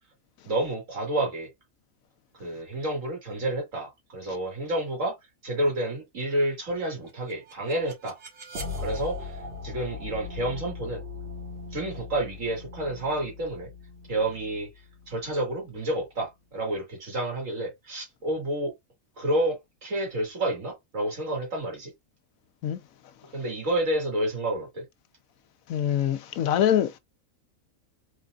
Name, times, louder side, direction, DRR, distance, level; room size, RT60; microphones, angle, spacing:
voice 1, 0.4-1.5 2.4-5.1 5.4-8.2 8.8-11.0 11.7-13.7 14.1-14.7 15.1-18.7 19.2-21.9 23.3-24.8, right 1 dB, 75° right, 2.3 m, -29 dB
sound 1, 7.1-16.0, left 4 dB, 60° right, 1.7 m, -39 dB
voice 2, 25.7-27.0, left 10 dB, 85° left, 1.1 m, -24 dB
4.1 x 3.9 x 2.4 m
omnidirectional pair, 1.4 m